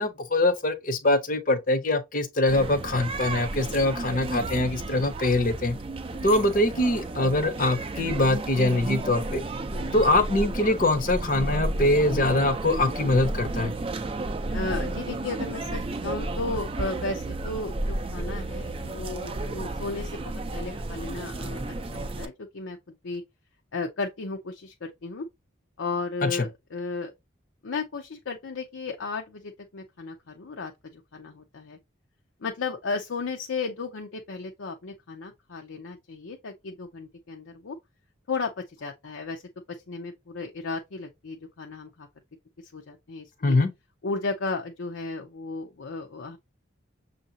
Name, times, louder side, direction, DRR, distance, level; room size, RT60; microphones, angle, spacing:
voice 1, 0.0-5.8 6.2-9.4 9.9-13.7 26.2-26.3 43.4-43.7, left 2 dB, 40° left, 0.6 m, -23 dB
sound 1, 2.5-22.2, right 2 dB, 30° right, 0.4 m, -32 dB
voice 2, 14.5-23.2 23.7-25.3 25.8-27.1 27.6-31.8 32.4-37.8 38.3-39.4 39.7-42.1 42.6-43.6 44.0-46.4, left 3 dB, 85° left, 0.6 m, -34 dB
6.4 x 2.6 x 2.7 m
head